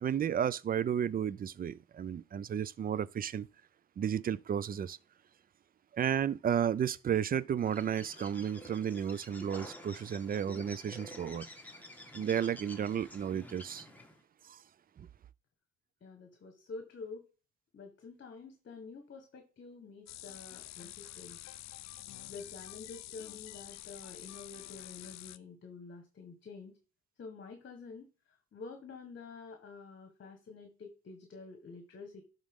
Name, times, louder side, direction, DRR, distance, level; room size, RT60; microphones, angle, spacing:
voice 1, 0.0-3.5 4.0-5.0 5.9-11.5 12.1-13.9 14.5-14.6 15.0-15.1, right 8 dB, 30° right, 0.4 m, -33 dB
Bird, 7.6-14.2, left 1 dB, 5° left, 1.4 m, -50 dB
voice 2, 16.0-17.3 17.7-21.4 22.3-26.7 27.2-28.1 28.5-32.2, left 4 dB, 40° left, 1.2 m, -48 dB
sound 1, 20.1-25.4, left 14 dB, 65° left, 0.5 m, -48 dB
11.0 x 3.8 x 3.6 m
cardioid pair, 90°, 30 cm